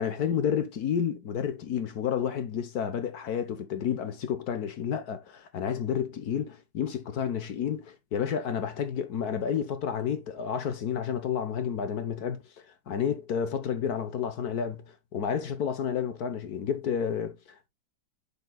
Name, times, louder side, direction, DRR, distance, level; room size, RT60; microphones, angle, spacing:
voice 1, 0.0-17.7, left 8 dB, 60° left, 1.4 m, -30 dB
10.0 x 5.8 x 2.3 m
omnidirectional pair, 2.0 m